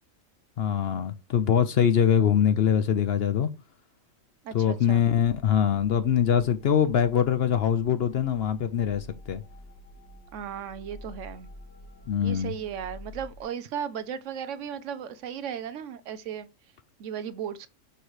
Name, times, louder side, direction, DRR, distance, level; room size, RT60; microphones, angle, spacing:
voice 1, 0.6-3.5 4.5-9.4 12.1-12.5, left 8 dB, 60° left, 0.7 m, -23 dB
voice 2, 4.4-5.0 10.3-11.5 12.2-16.5 17.0-17.7, right 8 dB, 70° right, 0.9 m, -36 dB
sound 1, 5.2-13.4, equal, 10° left, 0.8 m, -48 dB
6.4 x 3.1 x 4.7 m
omnidirectional pair, 1.4 m